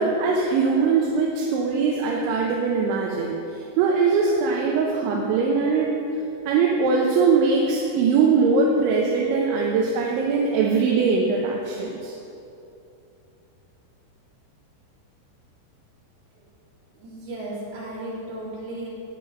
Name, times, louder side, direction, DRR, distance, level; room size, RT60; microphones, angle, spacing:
voice 1, 0.0-5.9 6.5-12.1, right 4 dB, 80° right, -1 dB, 3.4 m, -21 dB
voice 2, 17.0-18.9, right 1 dB, 55° right, -7 dB, 5.1 m, -35 dB
14.0 x 9.5 x 5.9 m, 2.8 s
omnidirectional pair, 5.4 m